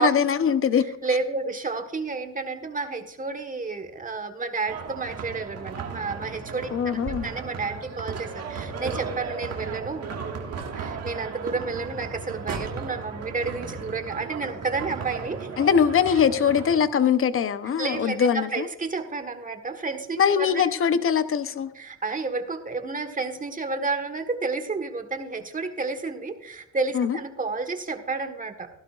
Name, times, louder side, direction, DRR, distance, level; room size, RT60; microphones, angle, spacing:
voice 1, 0.0-0.9 6.7-7.3 15.6-18.7 20.2-21.7 26.9-27.2, left 7 dB, 45° left, 12 dB, 0.9 m, -22 dB
voice 2, 1.0-10.2 10.7-15.5 16.1-16.2 17.8-20.6 21.7-28.7, right 4 dB, 25° right, 8 dB, 1.5 m, -31 dB
sound 1, 4.7-16.8, right 5 dB, 55° right, 1.8 m, -35 dB
16.0 x 12.0 x 2.5 m, 0.90 s
cardioid pair, 90°, 30 cm